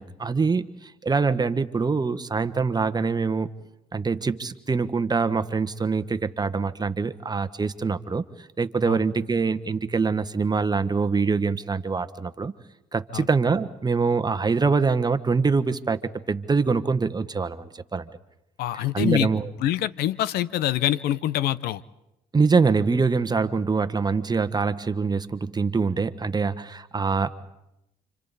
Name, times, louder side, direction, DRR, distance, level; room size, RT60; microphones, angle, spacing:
voice 1, 0.0-3.5 3.9-12.5 12.9-18.1 18.7-19.5 22.3-27.3, right 4 dB, 25° right, 11 dB, 1.2 m, -24 dB
voice 2, 18.6-19.3 19.6-21.8, left 13 dB, 80° left, 19 dB, 0.7 m, -25 dB
29.5 x 27.0 x 4.1 m, 0.88 s
supercardioid pair, 80°, 16 cm